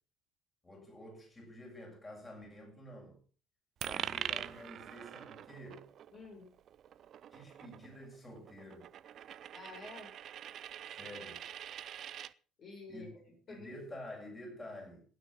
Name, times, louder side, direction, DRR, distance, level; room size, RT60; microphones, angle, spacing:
voice 1, 0.6-3.2 3.8-5.9 7.3-8.9 10.9-11.4 12.9-13.1 13.5-15.0, left 1 dB, 25° left, 6.9 m, -49 dB
Coin (dropping), 3.8-12.3, right 10 dB, 50° right, 0.6 m, -44 dB
voice 2, 6.1-6.5 9.5-10.1 12.6-13.7, left 3 dB, 45° left, 6.7 m, -50 dB
16.0 x 9.3 x 6.0 m
figure-of-eight pair, 55°, 0 cm